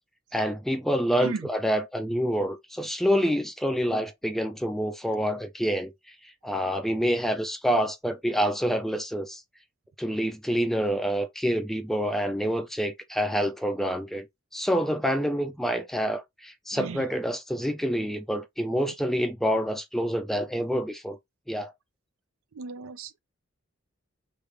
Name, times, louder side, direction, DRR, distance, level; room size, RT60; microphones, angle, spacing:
voice 1, 0.3-5.9 6.4-9.4 10.0-14.2 14.5-21.2 21.5-21.7, equal, ahead, 0.4 m, -27 dB
voice 2, 22.6-23.2, right 4 dB, 85° right, 0.5 m, -35 dB
3.3 x 2.5 x 3.2 m
head